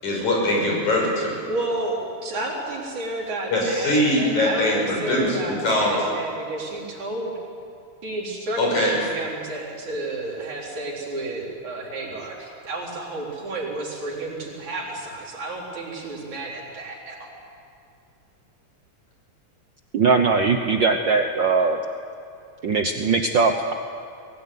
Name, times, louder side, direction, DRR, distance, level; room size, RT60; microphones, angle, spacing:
voice 1, 0.0-1.4 3.5-6.0 8.6-8.9, left 1 dB, 90° left, -2 dB, 7.3 m, -22 dB
voice 2, 1.5-7.3 8.0-17.2, right 2 dB, 90° right, -4 dB, 5.8 m, -31 dB
voice 3, 19.9-21.8 22.6-23.7, right 4 dB, 70° right, 5 dB, 1.1 m, -20 dB
22.0 x 17.5 x 9.5 m, 2.4 s
omnidirectional pair, 3.3 m